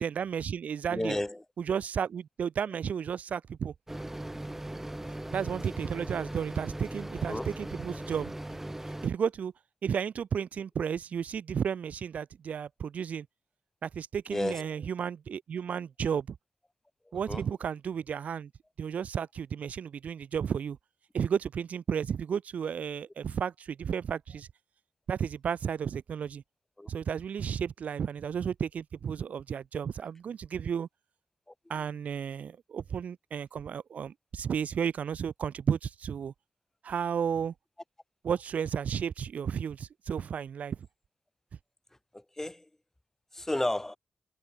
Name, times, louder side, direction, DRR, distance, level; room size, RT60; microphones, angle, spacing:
voice 1, 0.0-1.2 1.6-3.7 5.3-8.3 9.0-9.5 9.8-13.3 13.8-16.4 17.1-18.5 18.8-20.8 21.1-24.5 25.1-26.4 26.9-30.9 31.7-36.3 36.8-37.5 38.2-40.8, right 7 dB, 75° right, 0.5 m, -33 dB
voice 2, 0.9-1.4 7.3-7.6 14.3-14.9 17.1-17.4 26.8-26.9 42.1-42.7 43.3-44.0, left 1 dB, 15° left, 2.0 m, -33 dB
sound 1, 3.9-9.1, right 1 dB, 15° right, 0.7 m, -39 dB
cardioid pair, 50°, 3 cm